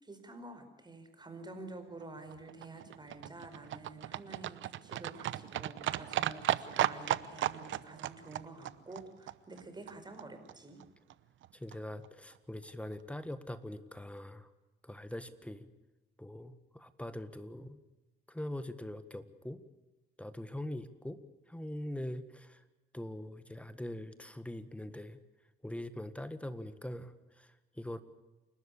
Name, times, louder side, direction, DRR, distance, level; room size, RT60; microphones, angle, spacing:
voice 1, 0.0-10.8, right 2 dB, 20° right, 7 dB, 4.9 m, -49 dB
Livestock farm animals working animals, 2.0-10.2 10.5-10.6 10.8-10.9 11.1-11.2 11.4-11.5 11.7-11.8 12.0-12.1 12.4-12.5 12.7-12.8, right 12 dB, 75° right, 0.9 m, -36 dB
voice 2, 11.5-14.5 14.8-15.7 16.2-17.8 18.3-19.6 20.2-21.2 21.4-22.7 22.9-25.2 25.6-28.0, left 1 dB, 5° left, 12 dB, 1.6 m, -42 dB
29.0 x 13.0 x 8.4 m, 1.1 s
cardioid pair, 90°, 20 cm